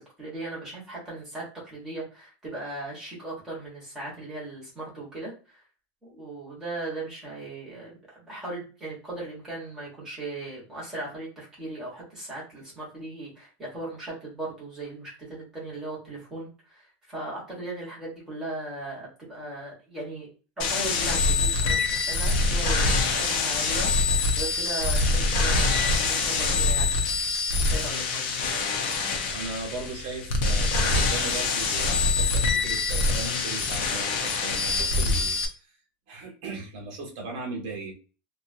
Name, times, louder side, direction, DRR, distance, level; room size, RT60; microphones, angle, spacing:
voice 1, 0.0-5.6 6.0-20.3 20.6-26.9 27.6-28.2, right 2 dB, 10° right, -6 dB, 1.2 m, -38 dB
sound 1, 20.6-35.5, left 3 dB, 50° left, 0.7 m, -25 dB
voice 2, 28.8-35.8 36.1-37.9, right 3 dB, 50° right, 0 dB, 1.3 m, -38 dB
2.7 x 2.4 x 2.6 m, 0.35 s
supercardioid pair, 180°, 6 cm